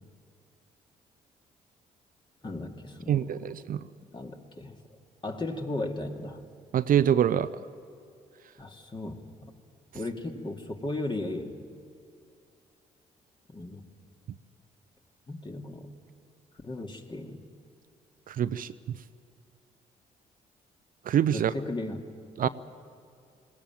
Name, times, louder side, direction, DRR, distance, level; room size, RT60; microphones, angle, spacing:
voice 1, 2.4-3.5 4.1-4.8 5.2-6.4 8.6-9.2 9.9-11.6 13.5-13.8 15.3-16.0 16.6-17.4 21.3-22.1 22.4-22.5, left 2 dB, 30° left, 3 dB, 2.4 m, -36 dB
voice 2, 3.1-3.8 6.7-7.5 18.3-19.0 21.1-21.5 22.4-22.5, right 9 dB, 55° right, 13 dB, 0.6 m, -25 dB
19.5 x 17.5 x 9.2 m, 2.4 s
hypercardioid pair, 50°, 17 cm